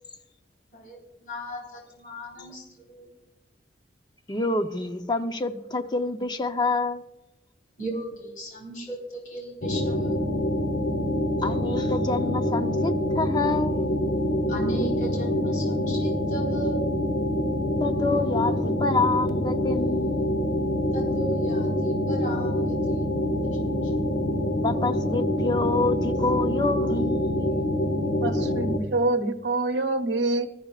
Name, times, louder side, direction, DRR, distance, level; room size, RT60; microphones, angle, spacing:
voice 1, 0.7-3.1 7.8-10.2 14.5-16.8 20.9-23.2, right 1 dB, 45° left, -2 dB, 4.2 m, -36 dB
voice 2, 4.3-7.0 11.4-13.8 17.8-20.2 24.6-27.4, left 3 dB, 25° left, 7 dB, 0.7 m, -27 dB
sound 1, 9.6-28.8, left 1 dB, 70° left, 1.4 m, -25 dB
voice 3, 28.2-30.5, right 2 dB, 70° right, 6 dB, 0.9 m, -26 dB
19.5 x 13.5 x 2.4 m, 0.94 s
head